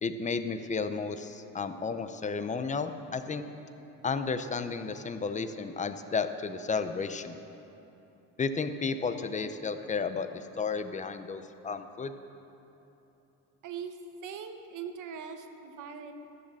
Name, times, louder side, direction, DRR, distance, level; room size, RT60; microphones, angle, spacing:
voice 1, 0.0-3.4 4.0-7.4 8.4-12.1, left 4 dB, 20° left, 9 dB, 0.5 m, -33 dB
voice 2, 13.6-14.0 14.2-16.1, right 7 dB, 60° right, 7 dB, 1.0 m, -41 dB
13.5 x 6.5 x 7.5 m, 3.0 s
cardioid pair, 130°, 35 cm